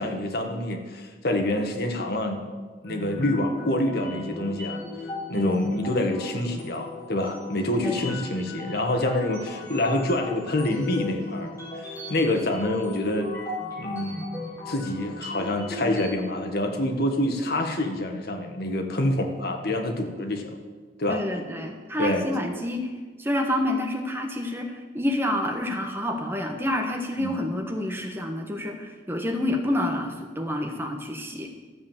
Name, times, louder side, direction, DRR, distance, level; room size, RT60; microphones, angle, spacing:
voice 1, 0.0-2.4 2.8-4.8 5.3-13.3 13.7-14.3 14.7-20.5 21.0-21.2 22.0-22.3 27.2-27.4, left 1 dB, 65° left, 4 dB, 1.6 m, -27 dB
sound 1, 2.8-16.1, left 2 dB, 20° left, 4.6 m, -37 dB
voice 2, 7.8-8.2 21.1-22.9 23.2-31.5, left 1 dB, 15° right, 3 dB, 1.4 m, -28 dB
13.5 x 7.6 x 7.3 m, 1.4 s
head